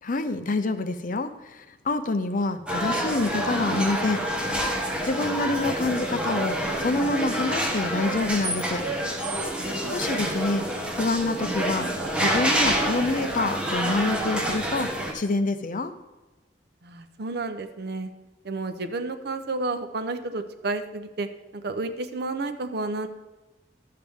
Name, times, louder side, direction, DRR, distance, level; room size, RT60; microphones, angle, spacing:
voice 1, 0.0-4.3 5.0-8.8 9.9-11.9 12.2-15.9, left 3 dB, 50° left, 10 dB, 0.6 m, -27 dB
sound 1, 2.7-15.1, right 1 dB, 5° right, 1.3 m, -27 dB
voice 2, 9.5-9.9 16.8-18.1 18.4-21.3 21.5-23.1, right 3 dB, 60° right, 8 dB, 0.7 m, -31 dB
11.5 x 7.6 x 3.5 m, 1.1 s
head